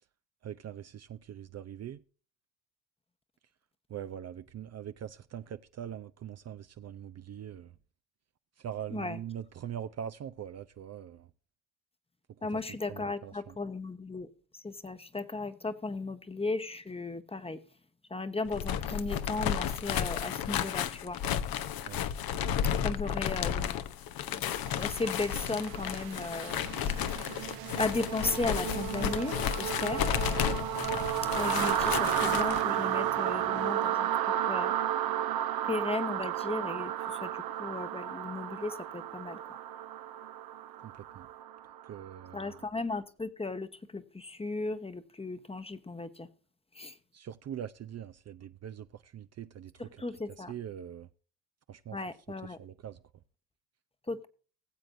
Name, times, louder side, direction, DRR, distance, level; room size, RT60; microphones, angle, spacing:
voice 1, 0.4-2.0 3.9-7.7 8.6-11.3 12.4-12.6 12.9-13.6 21.9-22.0 40.8-41.3 41.8-42.6 47.1-50.0 50.4-51.1 51.7-52.0 52.6-53.0, right 9 dB, 40° right, 0.6 m, -42 dB
voice 2, 12.4-14.3 14.5-17.6 18.1-21.2 22.8-23.9 24.3-27.2 27.8-30.1 31.3-34.7 35.7-39.6 42.3-46.3 46.7-46.9 49.8-50.5 51.9-52.6 54.1-54.3, left 3 dB, 15° left, 1.0 m, -36 dB
sound 1, 18.5-32.6, left 9 dB, 60° left, 0.9 m, -33 dB
sound 2, 24.6-42.4, right 11 dB, 65° right, 0.9 m, -33 dB
20.0 x 7.7 x 2.6 m
supercardioid pair, 70°, 40 cm